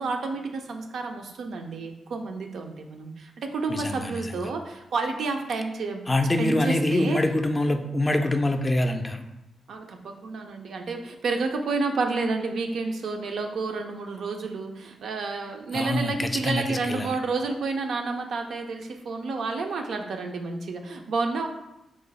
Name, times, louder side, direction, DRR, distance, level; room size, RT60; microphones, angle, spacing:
voice 1, 0.0-6.0 6.4-7.2 9.7-21.5, right 3 dB, 70° right, 4 dB, 0.3 m, -30 dB
voice 2, 3.7-4.5 6.1-9.2 15.7-17.2, left 1 dB, 30° left, 6 dB, 0.4 m, -25 dB
3.0 x 2.0 x 3.9 m, 0.91 s
supercardioid pair, 40°, 0 cm